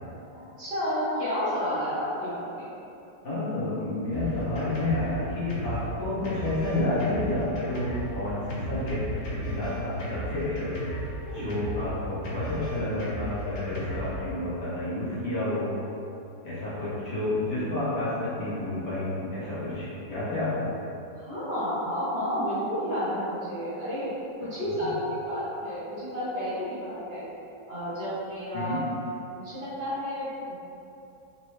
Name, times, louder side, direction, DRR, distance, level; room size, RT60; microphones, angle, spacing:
voice 1, 0.3-2.7 11.3-11.5 21.2-27.2 27.7-28.8 29.4-30.6, equal, 40° right, -12 dB, 1.0 m, -31 dB
voice 2, 3.2-9.0 9.4-15.7 16.4-20.6 24.4-24.5 28.5-28.8, left 1 dB, 65° left, -11 dB, 1.6 m, -30 dB
Drum kit, 4.1-14.2, equal, 85° left, 1.4 m, -35 dB
4.1 x 2.2 x 3.1 m, 2.8 s
omnidirectional pair, 2.0 m